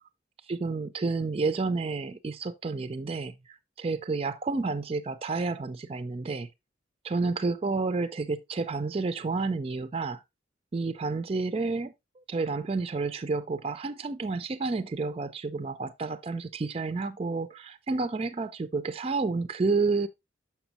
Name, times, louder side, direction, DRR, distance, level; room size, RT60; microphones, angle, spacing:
voice 1, 0.5-6.5 7.0-10.2 10.7-20.1, right 3 dB, 30° right, 0.4 m, -30 dB
7.0 x 5.8 x 2.8 m
head